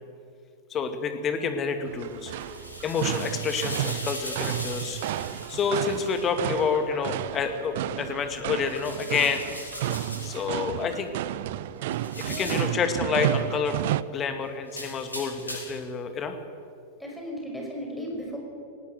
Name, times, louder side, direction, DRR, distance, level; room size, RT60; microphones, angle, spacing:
voice 1, 0.7-2.3 2.8-5.0 5.5-9.4 10.2-11.2 11.8-13.8 14.1-16.4, left 5 dB, 30° left, 8 dB, 2.1 m, -28 dB
sound 1, 1.9-14.0, right 13 dB, 55° right, 0.5 m, -32 dB
sound 2, 2.1-6.3 8.6-10.5 11.9-12.8 14.7-15.9, left 1 dB, 80° left, 5.3 m, -39 dB
voice 2, 12.3-12.8 17.0-18.4, equal, ahead, -1 dB, 5.9 m, -36 dB
19.0 x 18.5 x 8.1 m, 2.5 s
figure-of-eight pair, 90°, 0 cm